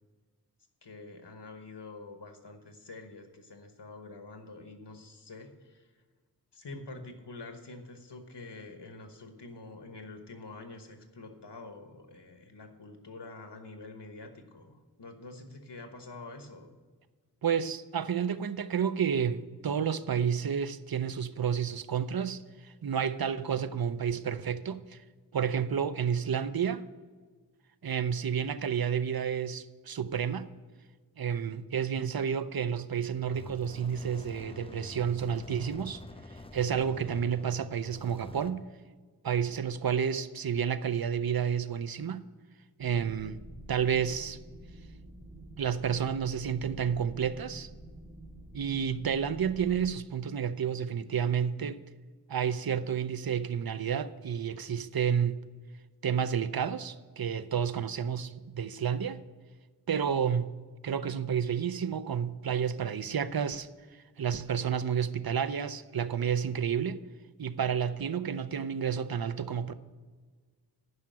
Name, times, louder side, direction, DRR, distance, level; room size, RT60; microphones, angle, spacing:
voice 1, 0.8-5.9 6.5-16.8, left 3 dB, 90° left, 1.2 m, -47 dB
voice 2, 17.4-25.0 25.3-26.9 27.8-30.5 31.2-36.0 36.5-38.6 39.2-42.2 42.8-43.4 43.7-44.4 45.6-47.7 48.5-51.8 52.3-55.4 56.0-59.2 59.9-60.5 60.8-63.7 64.2-67.0 67.4-69.7, right 7 dB, 65° right, 0.6 m, -30 dB
sound 1, 33.3-38.5, left 1 dB, 15° left, 0.6 m, -47 dB
sound 2, 42.8-49.9, right 1 dB, 35° right, 3.0 m, -48 dB
9.6 x 5.7 x 7.5 m
wide cardioid pair, 45°, 40 cm